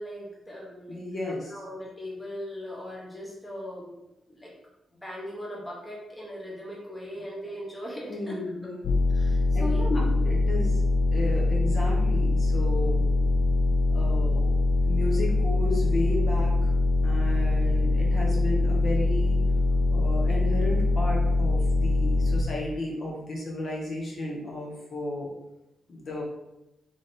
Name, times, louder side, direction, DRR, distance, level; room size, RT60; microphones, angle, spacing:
voice 1, 0.0-1.0 1.4-3.9 4.4-4.5 5.0-8.4 8.6-8.7 9.1-10.3, left 1 dB, 10° left, -4 dB, 0.9 m, -37 dB
voice 2, 0.9-1.5 8.1-8.9 9.5-9.7 10.2-10.8 11.1-13.0 13.9-14.5 14.9-16.7 17.0-19.4 19.9-25.3 25.9-26.2, left 1 dB, 40° left, -2 dB, 0.9 m, -33 dB
sound 1, 8.8-22.4, left 2 dB, 65° left, 0.4 m, -23 dB
3.5 x 3.3 x 4.1 m, 0.91 s
wide cardioid pair, 175°, 0 cm